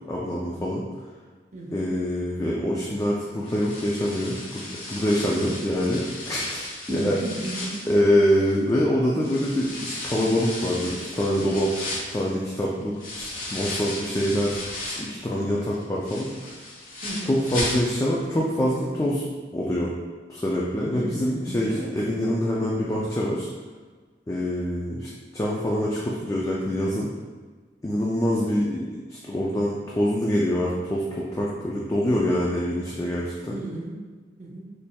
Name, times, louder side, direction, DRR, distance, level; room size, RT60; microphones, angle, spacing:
voice 1, 0.0-0.8 1.7-4.6 4.9-7.2 7.9-16.6 17.2-19.2 19.5-19.9 20.3-23.5 24.3-27.1 27.8-33.6, equal, 15° left, -4 dB, 0.3 m, -25 dB
voice 2, 1.5-1.9 6.9-7.8 17.0-17.3 20.9-21.8 33.5-34.0 34.4-34.6, right 1 dB, 40° right, -4 dB, 0.8 m, -34 dB
sound 1, 3.4-8.7 9.2-15.2 15.6-18.2 18.5-18.6 19.1-19.2, left 2 dB, 50° left, 0.9 m, -35 dB
4.2 x 3.3 x 2.2 m, 1.4 s
head